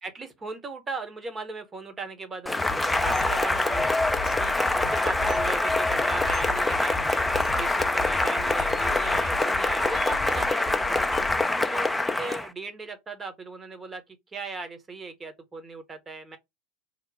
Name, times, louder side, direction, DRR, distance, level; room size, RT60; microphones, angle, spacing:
voice 1, 0.0-3.9 4.4-7.3 7.6-11.1 11.6-14.0 14.3-16.4, right 3 dB, 20° right, 0.9 m, -37 dB
sound 1, 2.5-11.4, left 4 dB, 35° left, 0.8 m, -37 dB
Cheering / Applause, 2.5-12.5, left 2 dB, 10° left, 0.4 m, -25 dB
2.9 x 2.1 x 4.0 m
hypercardioid pair, 85°, 0 cm